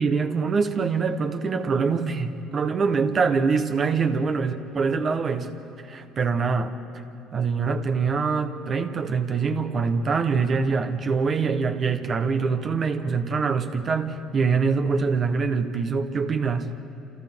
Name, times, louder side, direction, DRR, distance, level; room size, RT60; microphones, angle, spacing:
voice 1, 0.0-5.5 5.9-6.7 7.3-16.7, right 5 dB, 25° right, 7 dB, 0.9 m, -24 dB
28.5 x 28.0 x 3.6 m, 2.9 s
cardioid pair, 175°, 0 cm